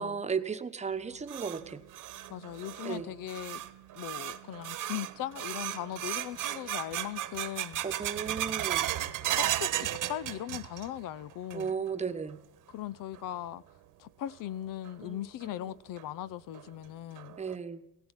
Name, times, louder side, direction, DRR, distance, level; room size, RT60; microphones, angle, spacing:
voice 1, 0.0-1.8 2.8-3.1 7.8-8.9 11.5-12.4 15.0-15.8 17.4-17.8, right 6 dB, 20° right, 1.0 m, -35 dB
sound 1, 0.9-11.0 11.3-11.9 12.3-12.4 13.1-13.2 14.8-14.9 15.4-15.5 16.0-16.1 16.5-16.6 17.2-17.5, right 12 dB, 70° right, 1.3 m, -35 dB
voice 2, 2.3-3.6 3.9-7.8 9.4-11.7 12.7-13.6 14.0-17.4, left 12 dB, 80° left, 0.8 m, -39 dB
18.0 x 14.5 x 9.8 m
cardioid pair, 160°, 33 cm